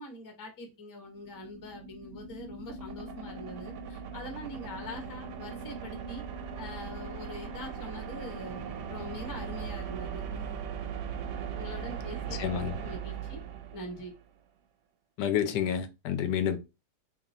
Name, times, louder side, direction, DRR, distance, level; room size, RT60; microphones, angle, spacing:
voice 1, 0.0-6.3 6.6-8.6 8.9-10.6 11.5-13.4 13.7-14.1, left 1 dB, 25° left, 0.4 m, -43 dB
sound 1, 1.1-14.2, right 6 dB, 90° right, 1.2 m, -39 dB
voice 2, 12.3-12.8 15.2-16.6, left 9 dB, 85° left, 1.2 m, -29 dB
3.7 x 2.2 x 4.0 m
omnidirectional pair, 1.8 m